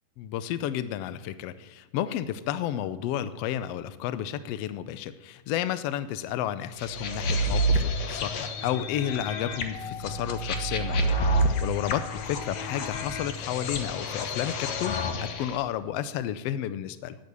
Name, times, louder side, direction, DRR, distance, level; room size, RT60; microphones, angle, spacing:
voice 1, 0.2-11.2 11.6-17.2, left 11 dB, 90° left, 13 dB, 1.4 m, -32 dB
sound 1, 6.8-15.6, equal, 60° left, 2.1 m, -29 dB
11.5 x 10.5 x 8.2 m, 1.1 s
omnidirectional pair, 3.7 m